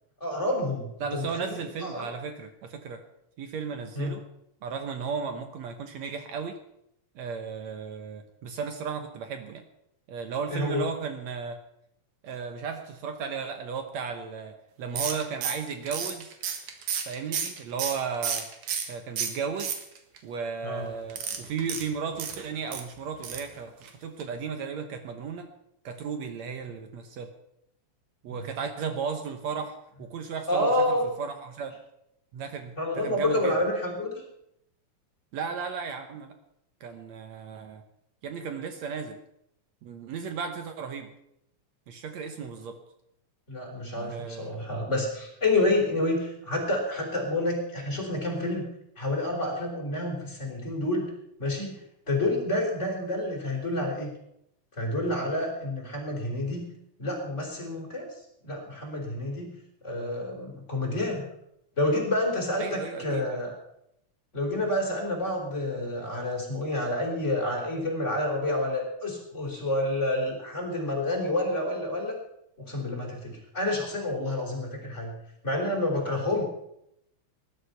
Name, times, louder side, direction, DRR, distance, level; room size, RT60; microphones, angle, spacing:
voice 1, 0.2-2.1 3.9-4.1 10.5-10.8 20.6-20.9 28.3-28.5 30.5-31.0 32.8-34.1 43.5-48.7 49.0-51.1 51.4-51.8 52.1-54.1 54.8-56.6 57.0-58.1 58.4-59.5 59.8-61.3 61.8-63.5 64.3-72.1 72.6-75.1 75.4-76.4, left 1 dB, 20° left, 0 dB, 4.4 m, -29 dB
voice 2, 1.0-3.0 3.4-4.2 4.6-6.6 7.2-9.6 10.1-11.6 12.2-16.4 17.1-18.5 18.9-19.8 20.2-25.5 25.8-27.3 28.2-30.7 31.2-31.8 32.3-33.6 35.3-36.4 36.8-37.8 38.2-39.2 39.8-41.1 41.9-42.8 44.0-44.6 62.6-63.2, right 6 dB, 70° right, 7 dB, 2.3 m, -35 dB
sound 1, 15.0-18.9 19.2-20.2 21.1-22.8 23.2-23.5 23.8-23.9 24.2-24.3, right 7 dB, 90° right, 3.1 m, -32 dB
19.5 x 11.5 x 5.8 m, 0.78 s
omnidirectional pair, 3.4 m